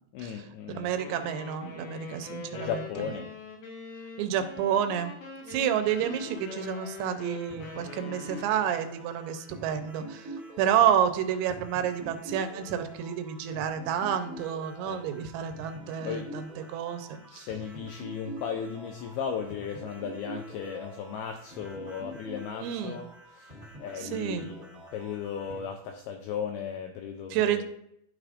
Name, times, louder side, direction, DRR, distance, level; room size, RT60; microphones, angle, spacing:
voice 1, 0.1-0.9 2.5-3.3 10.8-10.9 14.9-15.0 16.1-16.3 17.3-27.6, left 7 dB, 85° left, 4 dB, 2.2 m, -36 dB
voice 2, 0.8-2.9 4.2-5.1 5.5-10.3 10.6-17.5 22.6-23.0 24.0-24.5 27.3-27.6, right 9 dB, 90° right, 8 dB, 3.0 m, -29 dB
sound 1, 1.0-8.9, left 5 dB, 70° left, 2.2 m, -43 dB
sound 2, 5.8-25.6, equal, 45° right, 1.1 m, -45 dB
11.5 x 4.9 x 2.5 m, 0.74 s
omnidirectional pair, 5.0 m